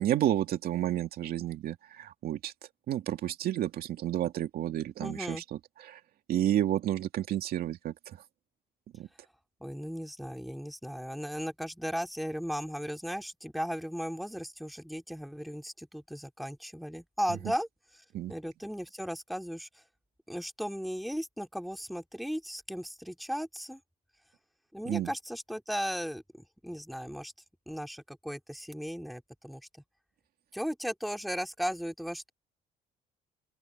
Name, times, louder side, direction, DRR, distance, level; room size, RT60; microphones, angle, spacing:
voice 1, 0.0-2.5 2.9-5.4 5.8-6.0 6.3-8.2 8.9-9.1 18.1-18.3 24.9-25.1, right 12 dB, 65° right, 2.4 m, -31 dB
voice 2, 5.0-5.4 9.6-17.7 17.9-19.8 20.3-23.8 24.7-27.3 27.7-29.7 30.5-32.3, equal, ahead, 2.6 m, -36 dB
open air
cardioid pair, 110°, 17 cm